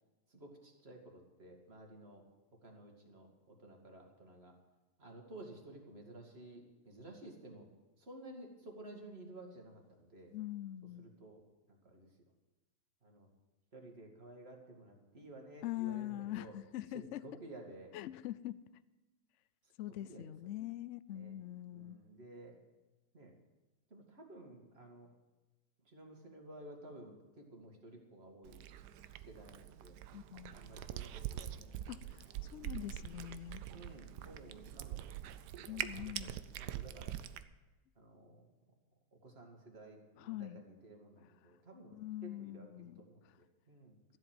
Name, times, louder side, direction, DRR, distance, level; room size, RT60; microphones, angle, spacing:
voice 1, 0.3-2.2 2.6-4.5 5.0-7.7 8.0-10.3 11.0-11.4 11.7-12.1 13.0-13.3 13.7-16.5 16.9-18.0 20.0-20.3 21.1-21.3 21.7-22.6 23.1-23.3 23.9-25.1 25.9-28.6 29.3-30.0 30.5-31.9 32.2-32.5 33.7-35.0 35.6-36.3 36.6-37.1 38.0-38.5 39.2-42.0 42.2-44.0, right 1 dB, 40° right, 2 dB, 2.4 m, -53 dB
voice 2, 10.3-11.1 15.6-17.2 17.9-18.6 19.8-22.0 30.1-30.6 31.9-32.2 32.5-33.6 35.7-36.4 40.2-40.6 41.9-43.3, left 14 dB, 70° left, 16 dB, 0.7 m, -43 dB
Cat, 28.4-37.4, right 12 dB, 90° right, 1.2 m, -44 dB
13.5 x 7.9 x 9.0 m, 1.1 s
omnidirectional pair, 1.7 m